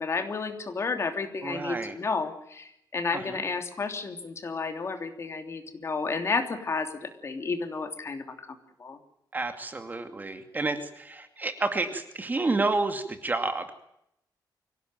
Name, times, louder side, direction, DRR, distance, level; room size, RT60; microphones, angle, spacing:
voice 1, 0.0-8.2 8.8-9.0, left 4 dB, 35° left, 7 dB, 3.1 m, -31 dB
voice 2, 1.4-2.0 3.1-3.4 9.3-13.7, right 3 dB, 25° right, 8 dB, 2.3 m, -30 dB
25.0 x 18.0 x 9.2 m, 0.76 s
wide cardioid pair, 175°, 8 cm